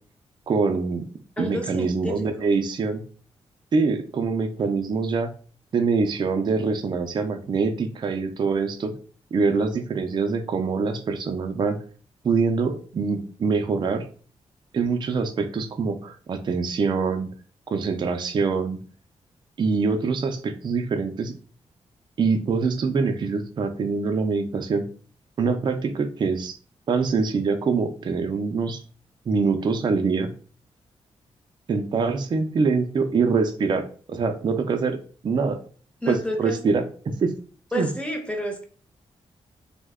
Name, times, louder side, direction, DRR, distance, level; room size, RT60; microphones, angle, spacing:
voice 1, 0.5-1.1 1.4-3.0 3.7-5.3 5.7-8.9 9.3-11.8 12.2-14.1 14.7-17.3 17.7-18.8 19.6-21.3 22.2-24.9 25.4-26.6 26.9-28.8 29.3-30.3 31.7-35.0 35.2-35.6 36.1-36.8 37.2-37.3 37.7-37.9, right 4 dB, 45° right, 6 dB, 0.4 m, -24 dB
voice 2, 1.4-2.3 36.0-36.6 37.7-38.6, left 1 dB, 10° left, 4 dB, 0.6 m, -30 dB
3.1 x 2.1 x 3.5 m, 0.41 s
wide cardioid pair, 135°, 11 cm